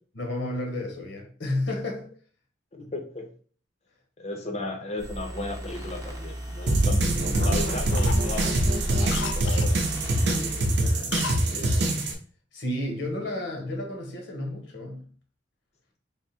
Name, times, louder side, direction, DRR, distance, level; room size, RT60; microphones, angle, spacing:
voice 1, 0.1-2.1 10.1-12.1 12.5-15.1, left 1 dB, 70° left, 1.1 m, -33 dB
voice 2, 2.7-3.3 4.2-9.8, left 2 dB, 35° left, 0.7 m, -35 dB
sound 1, 5.0-11.0, right 1 dB, 20° right, 0.8 m, -36 dB
Cough, 5.7-7.0 7.3-7.6 7.9-9.7 11.1-11.5 11.7-11.8, left 7 dB, 85° left, 0.4 m, -37 dB
sound 2, 6.7-12.1, right 1 dB, 65° right, 0.6 m, -24 dB
3.5 x 2.2 x 4.1 m
head